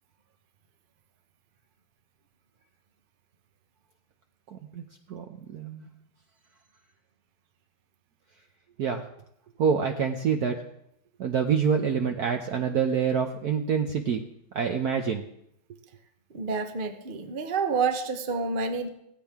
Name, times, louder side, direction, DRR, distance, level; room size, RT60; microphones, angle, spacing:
voice 1, 4.5-4.8 5.1-5.2 5.5-5.8 8.8-9.0 9.6-10.6 11.2-14.2 14.5-15.2, right 6 dB, 60° right, 4 dB, 1.2 m, -26 dB
voice 2, 16.3-18.9, right 4 dB, 40° right, 5 dB, 0.8 m, -28 dB
16.5 x 14.5 x 3.6 m, 0.77 s
omnidirectional pair, 2.1 m